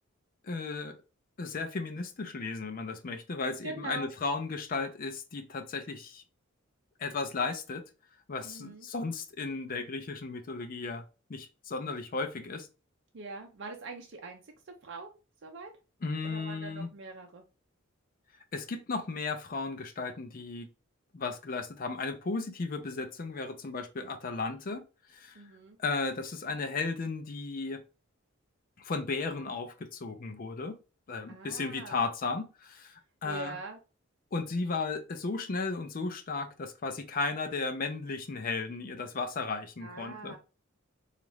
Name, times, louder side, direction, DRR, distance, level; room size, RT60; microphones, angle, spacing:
voice 1, 0.4-1.0 1.4-6.2 7.0-7.8 8.3-11.0 11.3-12.7 16.0-16.9 18.5-20.7 21.1-24.8 25.1-25.4 25.8-27.8 28.8-30.7 31.1-33.6 34.3-40.4, left 4 dB, 45° left, 0.5 m, -35 dB
voice 2, 3.6-4.1 8.4-8.9 13.1-14.4 14.8-15.1 15.4-15.7 16.2-17.4 25.4-25.8 31.3-32.1 33.2-33.8 39.8-40.4, right 3 dB, 60° right, 0.5 m, -43 dB
4.0 x 2.4 x 3.1 m
head